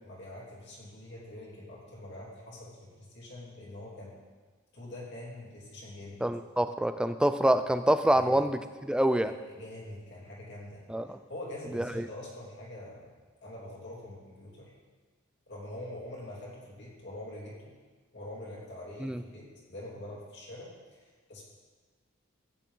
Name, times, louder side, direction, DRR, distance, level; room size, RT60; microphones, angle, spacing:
voice 1, 0.0-4.2 4.7-6.2 8.1-8.4 9.2-13.1 13.4-14.7 15.5-17.7 18.1-20.7 21.3-21.4, left 1 dB, 55° left, -5 dB, 3.1 m, -44 dB
voice 2, 6.2-9.3 10.9-11.2 11.7-12.0 19.0-19.2, right 1 dB, 5° right, 10 dB, 0.3 m, -26 dB
13.5 x 9.0 x 3.8 m, 1.4 s
head